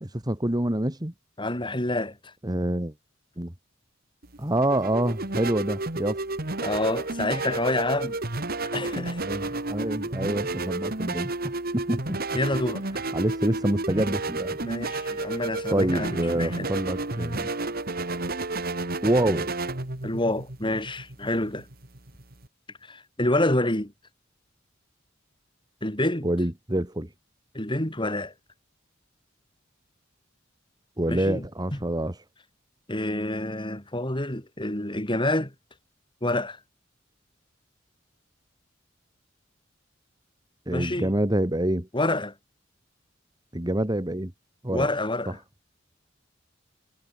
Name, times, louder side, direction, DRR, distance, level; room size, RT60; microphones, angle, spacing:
voice 1, 0.0-1.1 2.4-2.9 3.4-3.5 4.4-6.2 9.2-12.2 13.1-14.6 15.7-17.5 19.0-19.5 26.2-27.1 31.0-32.2 40.7-41.9 43.5-44.3 44.6-44.9, right 1 dB, 20° right, 2.0 m, -26 dB
voice 2, 1.4-2.3 6.6-8.2 8.7-9.3 12.3-12.8 14.6-16.7 20.0-21.7 22.8-23.9 25.8-26.3 27.5-28.3 31.1-31.4 31.7-31.8 32.9-35.5 36.2-36.6 40.7-41.1 41.9-42.3 44.7-45.4, left 1 dB, 25° left, 5.0 m, -28 dB
sound 1, 4.2-22.5, right 2 dB, 50° right, 3.3 m, -31 dB
head